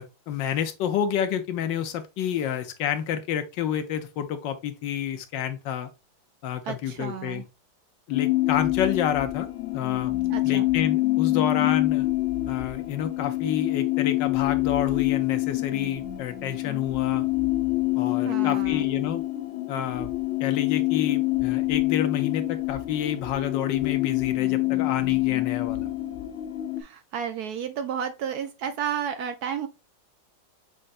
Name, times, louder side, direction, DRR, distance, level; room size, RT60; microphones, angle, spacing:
voice 1, 0.0-5.9 6.4-7.4 8.1-9.5 9.7-10.2 10.4-12.1 12.5-17.3 17.9-19.2 19.7-20.1 20.4-25.9, left 9 dB, 75° left, 1.4 m, -29 dB
voice 2, 6.7-7.4 10.3-10.7 18.2-18.9 26.8-29.7, right 8 dB, 70° right, 1.0 m, -32 dB
sound 1, 8.1-26.8, left 18 dB, 55° left, 0.9 m, -26 dB
6.5 x 3.3 x 2.4 m
omnidirectional pair, 2.0 m